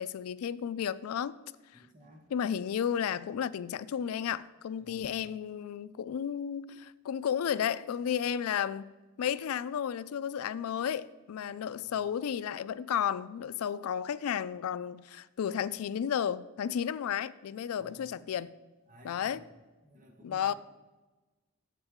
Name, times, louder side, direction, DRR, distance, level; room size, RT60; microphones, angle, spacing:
voice 1, 0.0-1.3 2.3-8.9 9.2-18.5 19.0-19.4 20.2-20.5, left 8 dB, 90° left, 0.3 m, -33 dB
voice 2, 1.7-2.3 4.8-5.2 11.8-12.1 17.8-18.2 18.9-19.5 19.8-20.5, equal, 40° right, 1.2 m, -55 dB
8.0 x 7.3 x 3.6 m
head